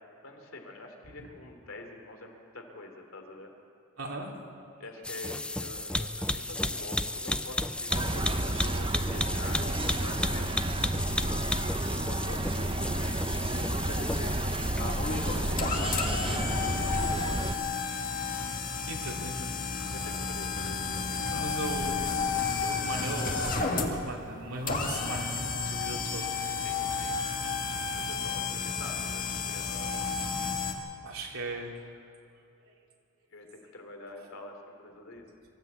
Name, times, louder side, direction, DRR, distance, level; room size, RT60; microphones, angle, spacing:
voice 1, 0.2-3.5 4.8-9.7 10.0-11.4 12.1-14.8 15.4-17.4 19.9-21.5 22.2-22.4 26.6-27.2 27.9-30.4 33.3-35.2, left 2 dB, 75° left, 3 dB, 2.9 m, -46 dB
voice 2, 4.0-4.3 9.6-9.8 18.9-19.5 21.3-22.1 22.6-26.3 28.5-28.6 31.0-32.0 32.6-32.7, right 2 dB, 85° right, -2 dB, 3.3 m, -38 dB
sound 1, 5.0-15.9, left 1 dB, 5° left, 0.4 m, -34 dB
sound 2, 7.9-17.5, right 1 dB, 25° right, 0.8 m, -31 dB
sound 3, 14.8-30.7, left 4 dB, 40° left, 1.7 m, -32 dB
23.5 x 13.5 x 8.1 m, 2.5 s
head